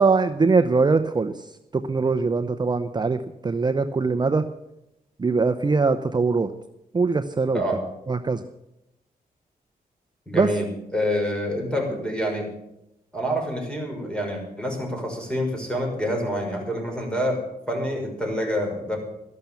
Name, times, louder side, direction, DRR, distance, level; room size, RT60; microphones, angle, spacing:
voice 1, 0.0-1.3 1.7-4.4 5.2-6.5 6.9-7.6 8.1-8.4 10.3-10.5, right 4 dB, 30° right, 9 dB, 0.7 m, -22 dB
voice 2, 10.3-12.5 13.1-17.4 17.7-19.0, equal, 5° left, 1 dB, 5.7 m, -27 dB
13.0 x 12.0 x 7.0 m, 0.86 s
cardioid pair, 100°, 15 cm